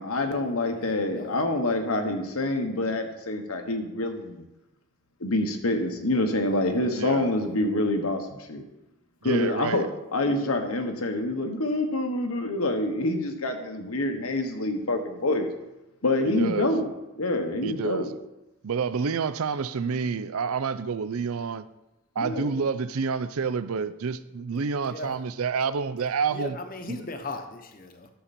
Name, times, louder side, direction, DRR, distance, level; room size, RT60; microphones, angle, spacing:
voice 1, 0.0-4.4 5.2-8.6 9.2-9.9 10.1-15.5 16.0-16.9 17.2-18.1 22.2-22.5, left 2 dB, 90° left, 1.3 m, -26 dB
voice 2, 0.7-1.3 24.9-25.1 26.3-28.1, left 2 dB, 40° left, 0.9 m, -38 dB
voice 3, 6.9-7.3 9.2-9.9 16.3-16.7 17.6-18.2 18.6-21.6 22.2-26.6 26.9-27.1, right 5 dB, 85° right, 0.5 m, -29 dB
11.5 x 6.8 x 4.3 m
head